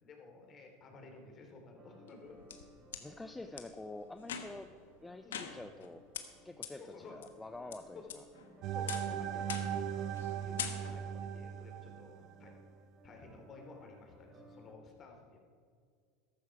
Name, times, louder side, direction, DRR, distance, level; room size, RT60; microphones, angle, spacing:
voice 1, 0.0-2.4 4.2-4.4 5.2-5.5 6.7-7.2 7.9-8.1 8.7-9.8 10.3-12.5 13.0-15.4, left 3 dB, 35° left, 2 dB, 3.3 m, -54 dB
sound 1, 1.8-14.7, equal, 35° right, 2.9 m, -60 dB
sound 2, 2.1-3.0 3.6-3.7 4.2-4.7 5.3-5.9 6.1-6.2 6.6-6.7 7.2-7.8 8.1-8.5 8.9-9.1 9.5-9.8 10.1-10.3 10.6-11.1, left 8 dB, 85° left, 1.2 m, -42 dB
voice 2, 3.0-4.7 5.0-6.0 6.4-8.2, left 2 dB, 10° left, 7 dB, 0.6 m, -47 dB
sound 3, 8.6-12.6, right 9 dB, 50° right, 0.9 m, -38 dB
14.5 x 12.0 x 4.8 m, 2.1 s
hypercardioid pair, 90°, 0 cm